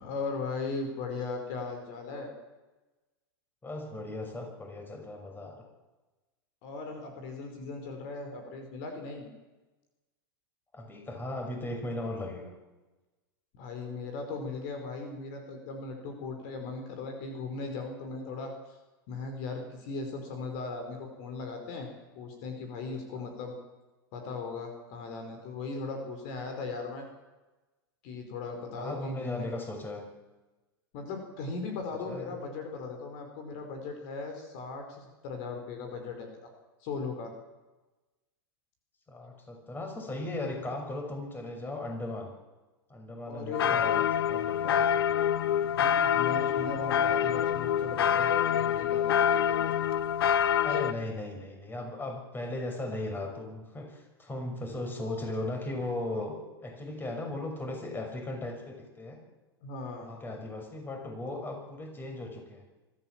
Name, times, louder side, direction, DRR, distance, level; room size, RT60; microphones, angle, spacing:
voice 1, 0.0-2.3 6.6-9.3 13.5-18.8 19.1-21.9 22.1-23.5 24.1-27.1 28.0-29.5 30.9-36.5 36.8-37.3 43.2-44.0 45.7-49.7 50.7-50.8 59.6-60.1, left 4 dB, 55° left, 4 dB, 5.1 m, -38 dB
voice 2, 3.6-5.7 10.7-12.5 23.1-23.3 28.8-30.0 32.1-32.4 39.1-42.3 42.9-44.8 50.6-59.2 60.0-62.6, left 2 dB, 15° left, 3 dB, 6.0 m, -37 dB
sound 1, 43.5-50.9, left 9 dB, 75° left, 0.9 m, -26 dB
25.0 x 14.0 x 7.5 m, 1.1 s
hypercardioid pair, 100°, 13 cm